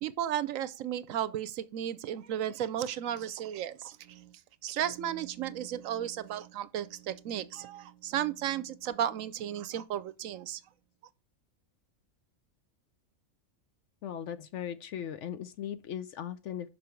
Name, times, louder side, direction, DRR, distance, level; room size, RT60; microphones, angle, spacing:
voice 1, 0.0-4.3 4.6-10.6, right 10 dB, 70° right, 0.9 m, -34 dB
voice 2, 14.0-16.7, left 9 dB, 65° left, 0.8 m, -38 dB
6.0 x 5.4 x 4.4 m
omnidirectional pair, 1.5 m